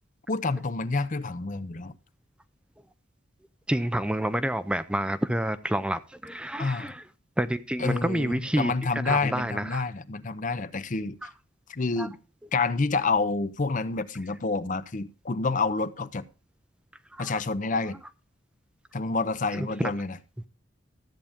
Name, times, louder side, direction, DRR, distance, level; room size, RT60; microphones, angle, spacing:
voice 1, 0.3-1.9 6.6-6.9 7.8-11.2 11.7-12.2 12.5-16.2 17.2-18.0 18.9-20.2, left 3 dB, 40° left, 0.7 m, -28 dB
voice 2, 3.7-7.0 7.4-9.8 11.2-11.3 12.0-12.1 17.1-17.3 19.5-19.9, right 1 dB, 5° right, 0.5 m, -29 dB
13.5 x 8.6 x 3.6 m
head